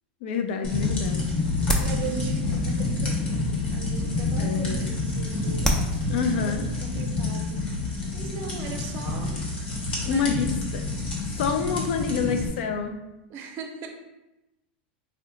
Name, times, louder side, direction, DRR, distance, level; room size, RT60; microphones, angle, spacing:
voice 1, 0.2-1.2 4.4-5.0 6.1-6.6 10.1-10.5 10.7-10.8 11.4-12.9, left 6 dB, 70° left, 6 dB, 0.4 m, -27 dB
sound 1, 0.6-12.5, left 3 dB, 90° left, 1.1 m, -28 dB
sound 2, 0.7-8.4, equal, 10° left, 0.4 m, -34 dB
voice 2, 1.8-7.7 8.1-9.4 10.0-10.3 12.0-12.5 13.3-13.9, right 5 dB, 45° right, 3 dB, 0.6 m, -39 dB
2.7 x 2.1 x 3.9 m, 0.96 s
supercardioid pair, 120°, 6 cm